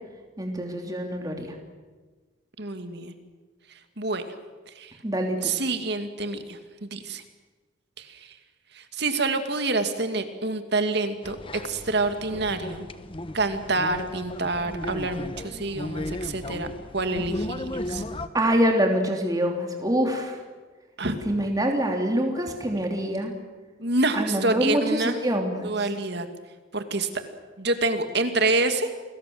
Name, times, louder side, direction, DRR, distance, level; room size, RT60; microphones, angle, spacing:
voice 1, 0.4-1.5 5.0-5.5 18.3-20.4 21.2-23.3 24.1-25.9, equal, 20° right, 2 dB, 3.2 m, -25 dB
voice 2, 2.6-3.1 4.0-4.2 4.8-4.9 5.4-7.2 8.0-8.1 8.8-12.9 13.3-16.7 16.9-18.0 21.0-21.2 23.8-25.2 25.6-26.3 26.7-27.1 27.6-28.9, right 2 dB, 55° right, 7 dB, 2.5 m, -27 dB
sound 1, 11.2-18.3, left 1 dB, 25° left, 1.1 m, -35 dB
29.5 x 21.0 x 8.0 m, 1.4 s
head